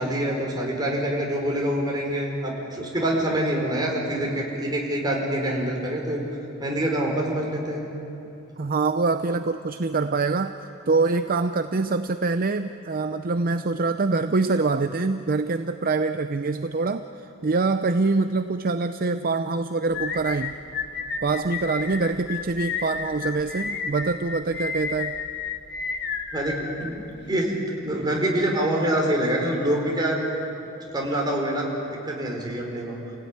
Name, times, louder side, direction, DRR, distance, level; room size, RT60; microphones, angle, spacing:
voice 1, 0.0-6.2 6.6-7.9 26.3-27.0 27.3-27.5 27.8-30.2 30.9-33.0, right 1 dB, 20° right, -1 dB, 4.9 m, -25 dB
voice 2, 8.6-10.6 10.9-20.6 21.2-25.2, right 3 dB, 40° right, 9 dB, 0.6 m, -25 dB
sound 1, 19.9-27.3, left 5 dB, 50° left, 1.6 m, -32 dB
29.0 x 17.5 x 9.8 m, 2.9 s
head